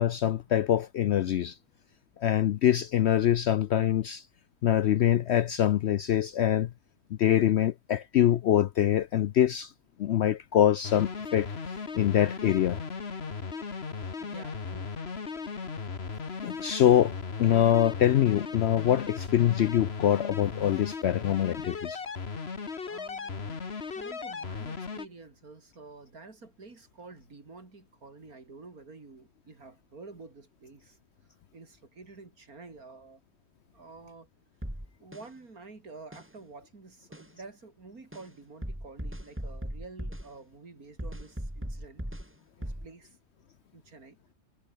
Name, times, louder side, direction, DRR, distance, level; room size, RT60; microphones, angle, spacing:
voice 1, 0.0-1.6 2.2-4.2 4.6-6.7 7.1-9.7 10.0-11.5 11.9-12.8 16.4-17.1 17.4-22.0, left 11 dB, 65° left, 0.7 m, -24 dB
sound 1, 10.8-25.1, left 5 dB, 45° left, 1.8 m, -37 dB
voice 2, 14.2-14.9 22.8-23.6 23.9-31.0 31.5-33.2 33.7-34.3 35.0-42.1 42.6-43.2 43.7-44.2, right 3 dB, 75° right, 3.9 m, -49 dB
sound 2, 34.6-35.2 36.1-36.2 37.1-37.3 38.1-38.2 38.6-40.3 41.0-42.3 42.6-42.9, equal, 10° right, 4.3 m, -37 dB
omnidirectional pair, 1.5 m